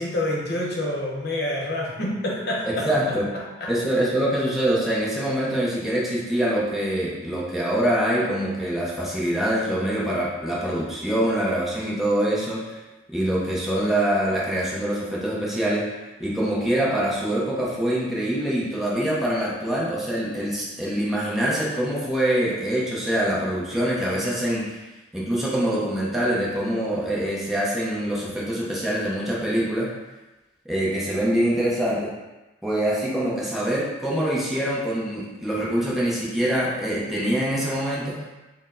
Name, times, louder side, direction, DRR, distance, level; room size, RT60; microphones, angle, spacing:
voice 1, 0.0-3.7, left 1 dB, 55° left, -2 dB, 0.8 m, -28 dB
voice 2, 2.7-3.3 3.7-12.8 13.1-15.9 16.2-24.8 25.1-29.9 30.7-32.1 32.6-38.2, right 1 dB, ahead, -6 dB, 0.6 m, -24 dB
4.5 x 2.0 x 3.6 m, 1.1 s
head